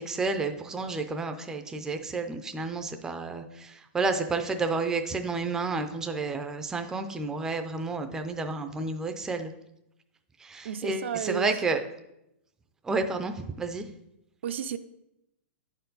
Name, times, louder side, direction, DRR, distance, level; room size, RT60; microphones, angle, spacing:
voice 1, 0.0-9.5 10.4-11.8 12.8-13.9, right 3 dB, 10° right, 7 dB, 0.4 m, -31 dB
voice 2, 10.6-11.5 14.4-14.8, right 8 dB, 70° right, 10 dB, 0.5 m, -32 dB
9.0 x 4.5 x 3.9 m, 0.84 s
hypercardioid pair, 150°, 7 cm